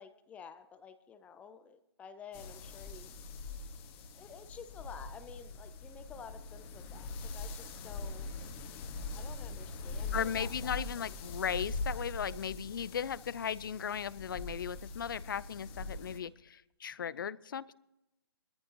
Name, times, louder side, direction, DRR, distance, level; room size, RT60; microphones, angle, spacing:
voice 1, 0.0-3.2 4.2-8.3 9.1-11.2, left 7 dB, 10° left, 11 dB, 0.6 m, -51 dB
sound 1, 2.3-16.2, left 3 dB, 25° left, 1.7 m, -42 dB
voice 2, 10.1-17.7, left 8 dB, 55° left, 19 dB, 0.6 m, -37 dB
21.0 x 14.0 x 3.0 m, 0.93 s
figure-of-eight pair, 140°, 13 cm